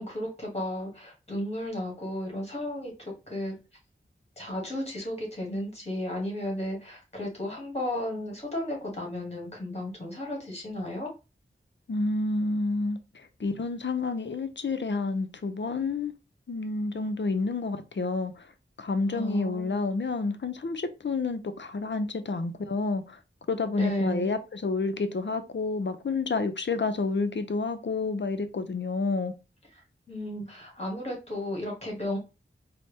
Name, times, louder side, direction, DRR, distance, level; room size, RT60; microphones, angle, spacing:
voice 1, 0.0-3.6 4.4-11.1 19.1-19.8 23.7-24.3 30.1-32.2, left 1 dB, 30° left, 2.0 m, -34 dB
voice 2, 11.9-16.1 16.5-18.5 18.8-23.2 23.5-29.3, left 3 dB, 60° left, 0.6 m, -29 dB
4.3 x 2.1 x 3.3 m
wide cardioid pair, 60°, 21 cm